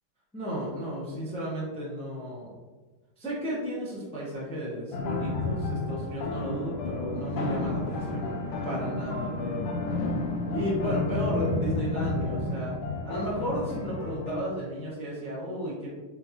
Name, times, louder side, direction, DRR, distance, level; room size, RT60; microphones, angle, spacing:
voice 1, 0.3-2.5 3.2-8.4 8.6-9.6 10.5-12.7 13.0-15.9, equal, 5° left, -7 dB, 0.4 m, -33 dB
sound 1, 4.9-14.4, left 2 dB, 80° left, 1.4 m, -31 dB
3.9 x 3.7 x 2.8 m, 1.3 s
omnidirectional pair, 2.4 m